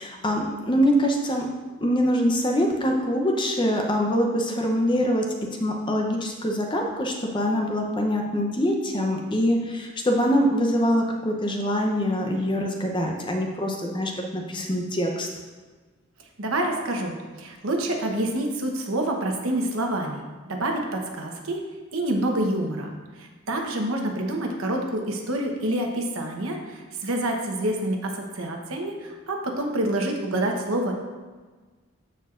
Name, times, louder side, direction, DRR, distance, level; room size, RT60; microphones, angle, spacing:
voice 1, 0.0-1.5 1.8-5.2 5.6-15.3 25.7-25.8, equal, 20° left, 1 dB, 0.7 m, -24 dB
voice 2, 16.4-21.6 21.9-22.9 23.2-30.9, right 1 dB, 80° right, 2 dB, 1.1 m, -27 dB
13.0 x 4.5 x 2.5 m, 1.4 s
head